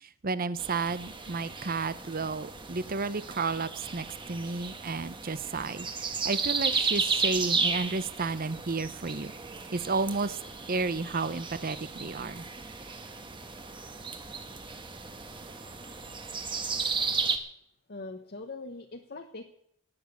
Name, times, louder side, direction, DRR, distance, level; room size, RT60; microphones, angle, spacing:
voice 1, 0.2-5.9 6.2-9.3 9.7-10.4 10.7-12.4, right 4 dB, 45° right, 15 dB, 0.8 m, -32 dB
sound 1, 0.6-17.4, right 4 dB, 25° right, 1.3 m, -34 dB
voice 2, 17.9-19.4, left 3 dB, 50° left, 5 dB, 1.1 m, -42 dB
18.0 x 7.4 x 8.3 m, 0.73 s
head